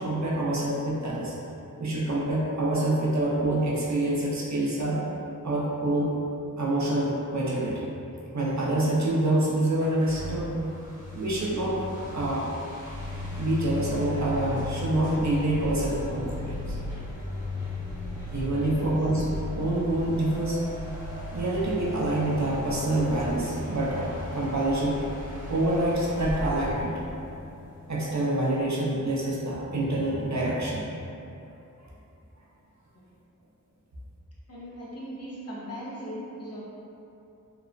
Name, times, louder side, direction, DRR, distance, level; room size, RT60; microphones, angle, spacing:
voice 1, 0.0-1.3 1.8-5.0 5.4-6.1 6.6-7.9 8.3-10.5 11.1-11.8 12.1-12.5 13.4-16.7 18.3-19.3 19.6-20.6 21.3-25.0 25.5-26.9 27.9-30.9, right 1 dB, 55° right, -6 dB, 0.6 m, -26 dB
sound 1, 9.8-28.3, left 2 dB, 70° left, 1.5 m, -36 dB
voice 2, 34.5-36.6, equal, 50° left, -8 dB, 0.8 m, -39 dB
2.9 x 2.0 x 2.5 m, 2.8 s
wide cardioid pair, 45°, 33 cm